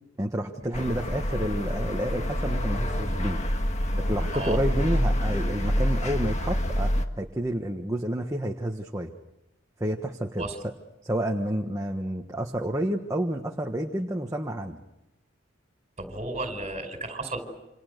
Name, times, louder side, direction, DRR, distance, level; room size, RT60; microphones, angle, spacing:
voice 1, 0.2-3.4 4.0-6.9 7.2-9.1 9.8-10.5 11.0-14.8, right 1 dB, 15° right, 2 dB, 1.4 m, -29 dB
sound 1, 0.7-7.1, equal, 35° left, 1.8 m, -27 dB
voice 2, 16.0-17.4, right 2 dB, 30° right, 6 dB, 4.8 m, -33 dB
28.0 x 27.0 x 6.7 m, 0.96 s
head